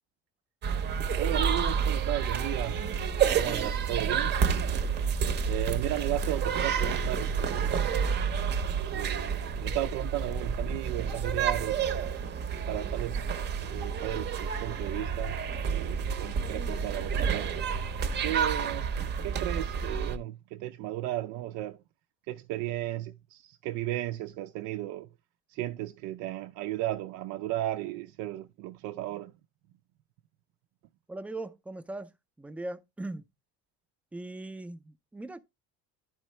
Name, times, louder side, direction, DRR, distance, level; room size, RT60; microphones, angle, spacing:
sound 1, 0.6-20.2, right 6 dB, 35° right, 0.7 m, -29 dB
voice 1, 1.2-2.8 3.3-4.4 5.5-7.9 8.9-11.9 12.7-13.3 13.6-17.5 18.2-21.8 22.3-25.1 25.5-29.3, right 15 dB, 85° right, 0.5 m, -35 dB
voice 2, 31.1-32.1 32.4-33.2 34.1-35.4, right 2 dB, 5° right, 0.4 m, -39 dB
11.0 x 4.5 x 3.1 m
cardioid pair, 165°, 29 cm